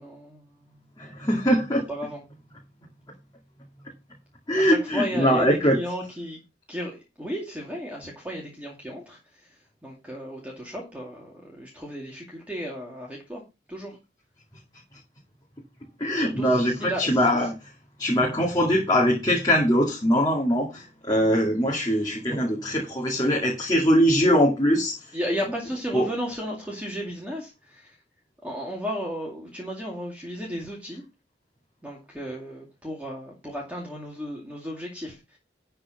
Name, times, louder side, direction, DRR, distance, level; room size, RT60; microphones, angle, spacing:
voice 1, 0.0-0.8 1.9-2.2 4.6-6.4 6.7-13.4 13.7-14.0 16.1-17.5 25.1-28.0 28.4-31.0 31.8-35.4, equal, 10° right, 2.3 m, -34 dB
voice 2, 1.0-1.8 4.5-5.8 16.0-17.5 18.0-25.1 25.9-26.1, equal, 20° left, 2.2 m, -22 dB
11.5 x 4.6 x 5.8 m
head